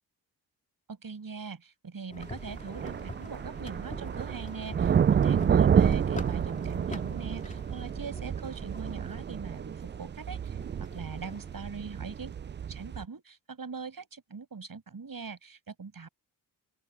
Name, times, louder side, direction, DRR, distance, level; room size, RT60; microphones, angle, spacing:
voice 1, 0.9-12.3 12.6-16.1, right 5 dB, 45° right, 6.5 m, -41 dB
sound 1, 2.1-11.7, left 2 dB, 15° left, 2.6 m, -46 dB
sound 2, 2.2-13.0, right 8 dB, 25° right, 0.4 m, -29 dB
open air
supercardioid pair, 45°, 46 cm